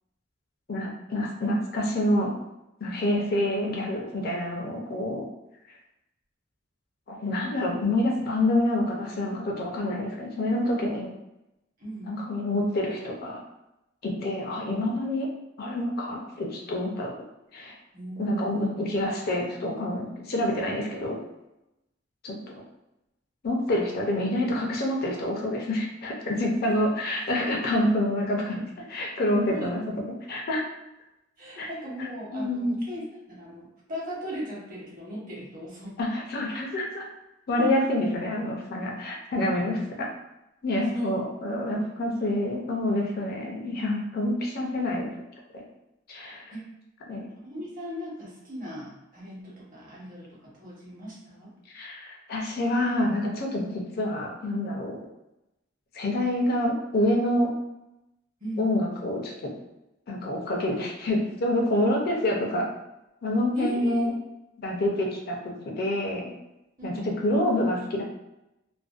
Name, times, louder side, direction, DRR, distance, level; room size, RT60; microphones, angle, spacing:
voice 1, 0.7-2.3 2.8-5.3 7.1-11.1 12.1-13.4 14.0-15.3 15.6-17.1 17.5-17.7 18.2-21.2 22.2-22.3 23.4-28.6 28.9-29.8 30.3-30.6 31.6-31.7 32.3-32.8 36.0-37.1 37.5-40.1 40.6-45.1 45.5-45.6 46.1-46.5 47.1-47.3 51.7-55.0 55.9-57.5 58.6-59.5 60.1-62.7 63.2-64.1 64.6-66.3 66.8-68.0, left 1 dB, 50° left, -1 dB, 0.5 m, -27 dB
voice 2, 11.8-12.2 17.9-18.9 29.4-29.7 31.4-36.0 37.6-37.7 40.9-41.1 42.2-42.3 46.5-46.6 47.3-51.5 58.4-58.6 63.5-64.1 66.8-67.1, equal, 45° right, -5 dB, 0.9 m, -38 dB
2.5 x 2.1 x 2.4 m, 0.92 s
head